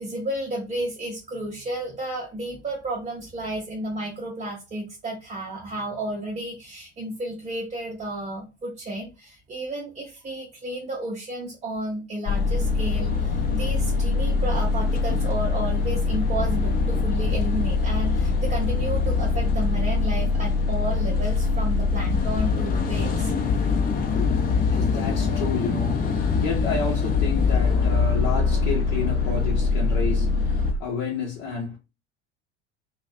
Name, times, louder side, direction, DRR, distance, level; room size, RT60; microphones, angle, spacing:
voice 1, 0.0-23.3, right 1 dB, 20° right, 0.6 m, -32 dB
sound 1, 12.3-30.7, left 4 dB, 25° left, 0.5 m, -23 dB
voice 2, 23.9-26.1 26.4-31.8, left 4 dB, 50° left, 0.8 m, -30 dB
2.4 x 2.1 x 2.4 m
figure-of-eight pair, 70°, 34 cm